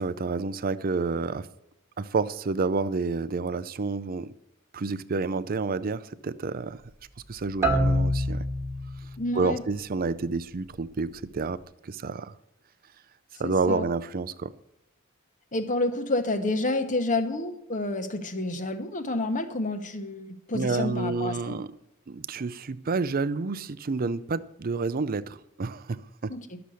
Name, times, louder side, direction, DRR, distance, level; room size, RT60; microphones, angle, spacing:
voice 1, 0.0-1.5 2.0-4.3 4.7-6.8 7.3-8.4 9.4-12.3 13.4-14.5 20.5-21.7 22.1-26.4, right 4 dB, 40° right, 16 dB, 0.5 m, -29 dB
sound 1, 7.6-9.3, equal, 15° right, 1.6 m, -26 dB
voice 2, 9.2-9.6 13.4-13.8 15.5-21.5 26.3-26.6, left 2 dB, 35° left, 8 dB, 1.2 m, -29 dB
12.0 x 6.9 x 6.3 m, 0.86 s
head